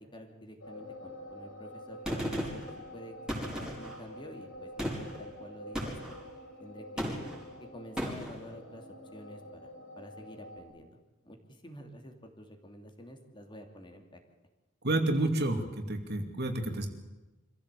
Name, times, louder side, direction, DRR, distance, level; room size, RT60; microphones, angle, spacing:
voice 1, 0.1-3.2 3.5-6.0 6.6-7.2 7.6-8.8 9.1-9.7 10.0-11.0 11.2-14.2, equal, 25° left, 4 dB, 2.9 m, -49 dB
sound 1, 0.6-10.6, left 1 dB, 90° left, 7.5 m, -47 dB
Gunshot gunfire, 2.1-2.7 3.3-4.0 4.8-5.2 5.8-6.2 7.0-7.5 8.0-8.4, equal, 5° right, 4.6 m, -35 dB
voice 2, 14.8-16.9, right 1 dB, 55° right, 5 dB, 2.7 m, -30 dB
25.5 x 15.0 x 8.4 m, 1.1 s
head